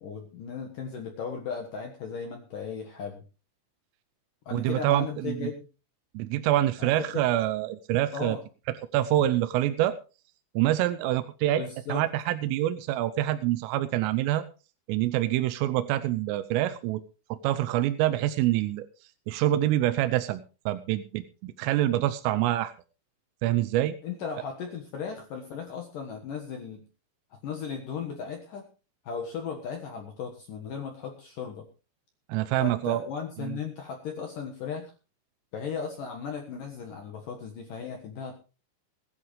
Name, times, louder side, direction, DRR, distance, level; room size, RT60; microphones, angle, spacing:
voice 1, 0.0-3.2 4.5-5.7 6.8-7.3 8.1-8.4 11.6-12.1 24.0-26.8 27.3-28.7 29.0-31.7 32.6-34.9 35.5-38.4, left 6 dB, 65° left, 3 dB, 2.2 m, -36 dB
voice 2, 4.5-5.5 6.1-8.4 8.9-9.9 10.6-11.6 11.9-14.4 14.9-17.0 17.3-18.9 19.3-22.7 23.4-23.9 32.3-33.0 33.4-33.6, right 14 dB, 85° right, 10 dB, 3.3 m, -26 dB
20.5 x 11.0 x 3.2 m, 0.33 s
omnidirectional pair, 5.8 m